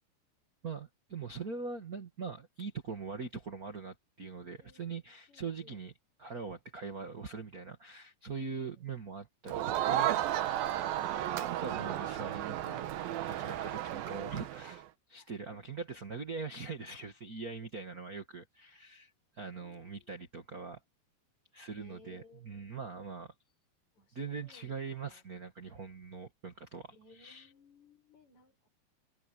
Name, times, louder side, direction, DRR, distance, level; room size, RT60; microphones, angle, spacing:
voice 1, 0.6-5.9 6.2-10.2 11.6-12.8 13.2-20.8 21.5-23.3 24.1-27.5, right 5 dB, 35° right, 1.5 m, -42 dB
voice 2, 4.6-4.9 5.3-5.8 8.6-8.8 10.7-11.3 19.5-20.1 21.7-22.9 24.0-24.7 25.0-25.2 26.9-28.7, left 3 dB, 50° left, 8.0 m, -60 dB
Crowd, 9.5-14.8, right 12 dB, 75° right, 3.0 m, -33 dB
omnidirectional pair, 4.2 m